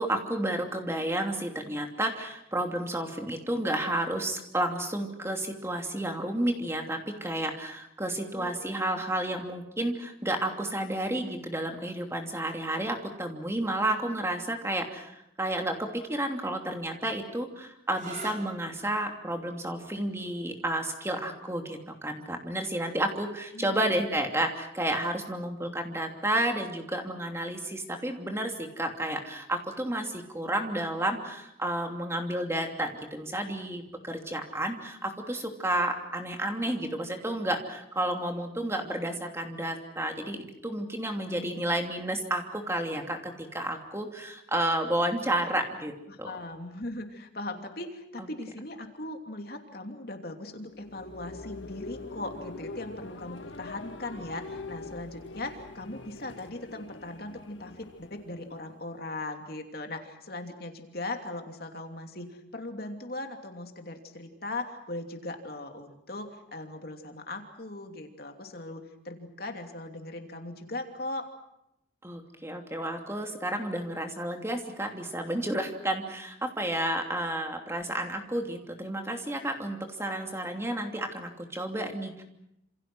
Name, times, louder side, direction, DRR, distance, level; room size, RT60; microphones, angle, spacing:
voice 1, 0.0-46.3 48.2-48.3 72.0-82.2, right 1 dB, 15° right, 3 dB, 2.9 m, -31 dB
sound 1, 17.9-25.3 26.3-26.8 30.4-30.7, right 2 dB, 40° right, 5.3 m, -52 dB
voice 2, 23.5-24.2 41.2-41.7 46.1-71.3, left 2 dB, 55° left, 4 dB, 2.9 m, -39 dB
sound 2, 50.5-59.1, left 3 dB, 90° left, 1.6 m, -44 dB
28.0 x 28.0 x 6.3 m, 0.81 s
head